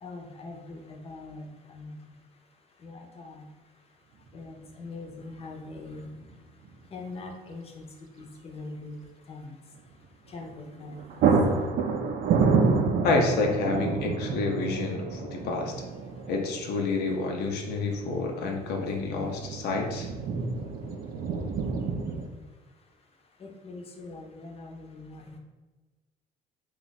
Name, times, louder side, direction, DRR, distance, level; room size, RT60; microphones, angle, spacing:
voice 1, 0.0-2.1 2.8-3.5 4.3-6.1 6.9-9.6 10.3-11.5 19.1-19.5 23.4-25.4, left 2 dB, 35° left, 2 dB, 0.6 m, -43 dB
sound 1, 4.3-4.4 6.0-6.4 6.6-6.7 10.4-10.6 10.9-22.3, right 5 dB, 60° right, 0.5 m, -29 dB
voice 2, 13.0-15.7 16.3-20.1, left 3 dB, 75° left, 2 dB, 0.6 m, -28 dB
2.9 x 2.4 x 4.0 m, 1.2 s
cardioid pair, 110°, 17 cm